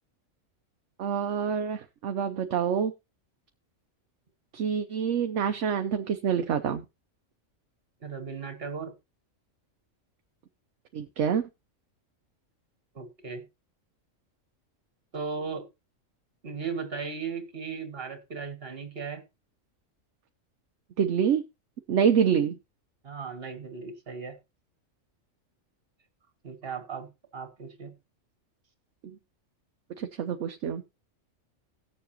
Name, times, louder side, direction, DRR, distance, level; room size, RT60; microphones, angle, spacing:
voice 1, 1.0-2.9 4.5-6.9 10.9-11.5 21.0-21.4 21.9-22.6 30.0-30.8, right 7 dB, 70° right, 1.0 m, -26 dB
voice 2, 8.0-8.9 13.0-13.5 15.1-15.7 16.4-19.2 23.0-24.4 26.4-27.9, right 5 dB, 50° right, 1.9 m, -37 dB
18.0 x 7.0 x 2.8 m
omnidirectional pair, 1.3 m